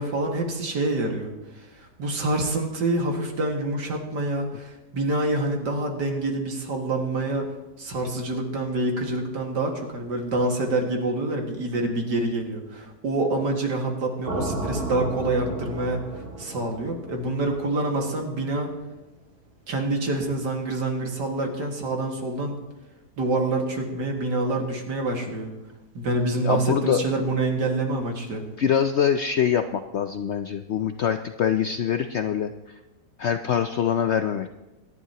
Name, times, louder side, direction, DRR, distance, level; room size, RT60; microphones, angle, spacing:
voice 1, 0.0-1.3 1.8-7.5 7.8-16.0 16.4-18.7 19.7-22.6 23.2-25.5 25.9-28.5, right 2 dB, 80° right, 1 dB, 2.5 m, -26 dB
sound 1, 14.3-18.3, right 2 dB, 35° right, 1.7 m, -34 dB
voice 2, 26.4-27.0 28.6-32.5 33.2-34.5, left 8 dB, 85° left, 8 dB, 0.6 m, -24 dB
25.5 x 11.0 x 2.9 m, 1.1 s
omnidirectional pair, 1.8 m